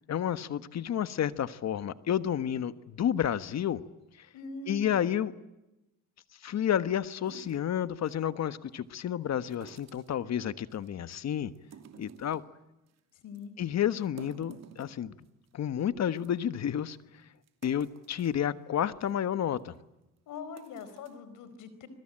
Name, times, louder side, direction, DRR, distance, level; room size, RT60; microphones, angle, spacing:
voice 1, 0.1-3.8 4.7-5.3 6.4-11.5 12.0-12.4 13.6-15.1 15.5-17.0 17.6-19.7, left 9 dB, 60° left, 13 dB, 1.4 m, -30 dB
voice 2, 4.3-5.1 13.1-13.5 20.3-21.9, left 4 dB, 85° left, 13 dB, 4.6 m, -43 dB
sound 1, 7.2-8.2 9.5-10.2 10.7-11.1 11.5-12.5 12.9-13.0 13.3-13.4 13.9-15.5 15.8-15.9 16.1-16.3 16.9-17.0 17.4-18.4 18.9-19.1 19.6-19.8 20.4-21.1, right 8 dB, 60° right, 2.9 m, -52 dB
28.5 x 22.5 x 9.0 m, 0.96 s
cardioid pair, 90°, 30 cm